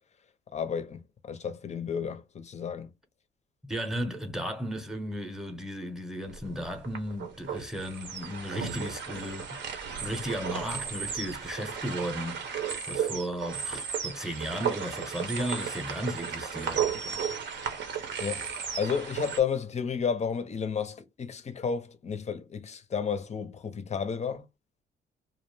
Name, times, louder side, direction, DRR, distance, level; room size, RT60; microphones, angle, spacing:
voice 1, 0.5-2.9 18.2-18.5 18.8-24.5, left 6 dB, 35° left, 0.5 m, -32 dB
voice 2, 3.6-12.5 12.9-16.9, equal, ahead, 0.7 m, -35 dB
sound 1, 6.3-19.4, right 7 dB, 65° right, 0.8 m, -34 dB
2.4 x 2.0 x 3.2 m
cardioid pair, 90°, 20 cm